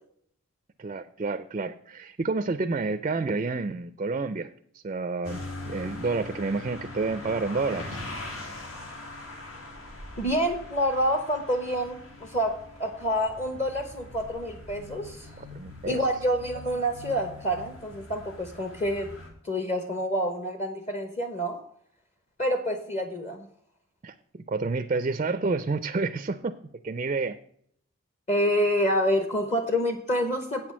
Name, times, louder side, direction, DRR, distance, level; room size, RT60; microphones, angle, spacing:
voice 1, 0.8-8.0 15.4-16.1 24.0-26.6 26.8-27.4, right 3 dB, 30° right, 11 dB, 0.4 m, -29 dB
sound 1, 5.2-19.3, left 2 dB, 75° left, 2.4 m, -42 dB
voice 2, 10.2-15.4 15.8-19.1 19.4-21.6 22.4-23.4 28.3-30.7, equal, 30° left, 7 dB, 0.8 m, -27 dB
8.5 x 6.1 x 7.3 m, 0.67 s
head